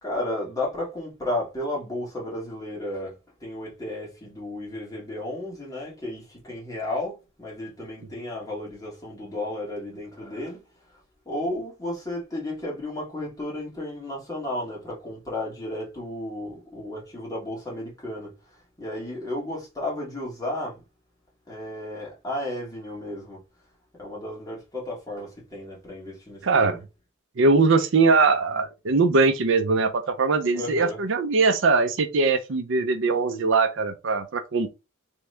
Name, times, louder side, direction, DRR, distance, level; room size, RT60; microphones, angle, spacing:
voice 1, 0.0-10.6 10.9-11.0 11.3-20.8 21.5-23.4 24.0-26.8 30.5-31.0, left 1 dB, 20° left, 2.1 m, -33 dB
voice 2, 26.4-26.8 27.4-34.7, right 4 dB, 65° right, 0.6 m, -21 dB
3.5 x 3.1 x 3.2 m
head